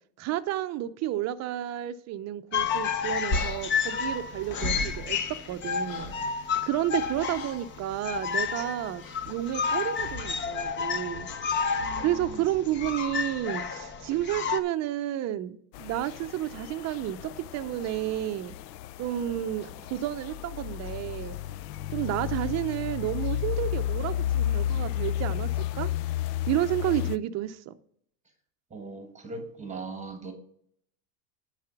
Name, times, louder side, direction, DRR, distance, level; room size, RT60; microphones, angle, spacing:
voice 1, 0.2-5.2 5.5-6.1 6.6-11.3 12.0-18.6 19.0-21.4 21.9-25.9 26.5-27.7, right 13 dB, 35° right, 0.6 m, -31 dB
sound 1, 2.5-14.6, left 6 dB, 25° left, 0.6 m, -31 dB
sound 2, 3.3-5.6 5.9-6.3 7.3-7.6 9.0-9.3, left 1 dB, 45° left, 1.8 m, -34 dB
sound 3, 15.7-27.2, left 11 dB, 75° left, 0.6 m, -32 dB
voice 2, 28.7-30.3, right 3 dB, 15° right, 1.5 m, -39 dB
10.0 x 4.9 x 7.1 m
supercardioid pair, 135°, 50 cm